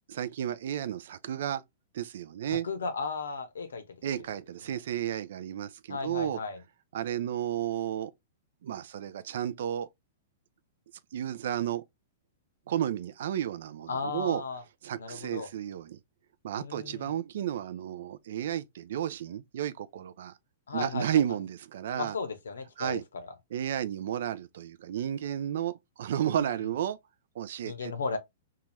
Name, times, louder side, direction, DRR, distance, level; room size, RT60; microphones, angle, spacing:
voice 1, 0.1-1.6 1.9-2.7 4.0-6.4 6.9-8.1 8.6-9.9 11.1-11.8 12.7-14.4 14.8-16.0 16.4-20.3 20.7-22.2 22.8-23.0 23.5-27.0 27.4-27.9, right 10 dB, 60° right, 0.3 m, -32 dB
voice 2, 2.6-3.8 4.1-4.2 5.9-6.6 13.9-14.6 15.0-15.5 16.6-17.1 20.7-21.2 21.9-23.3 27.6-28.2, left 4 dB, 70° left, 0.7 m, -35 dB
2.8 x 2.3 x 3.1 m
figure-of-eight pair, 105°, 0 cm